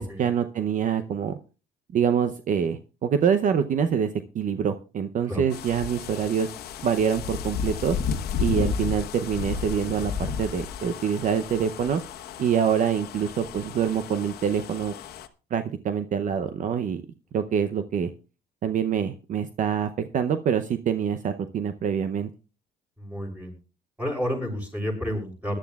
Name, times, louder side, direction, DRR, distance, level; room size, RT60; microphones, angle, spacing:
voice 1, 0.0-1.4 1.9-6.5 6.8-8.0 8.4-12.0 12.4-14.9 15.5-17.0 17.3-18.1 18.6-22.3, right 8 dB, 50° right, 10 dB, 0.7 m, -25 dB
sound 1, 5.5-15.3, left 7 dB, 70° left, 1.2 m, -33 dB
voice 2, 23.0-23.5 24.0-25.6, equal, 10° right, 1 dB, 6.9 m, -30 dB
20.5 x 11.5 x 2.4 m, 0.34 s
cardioid pair, 110°, 17 cm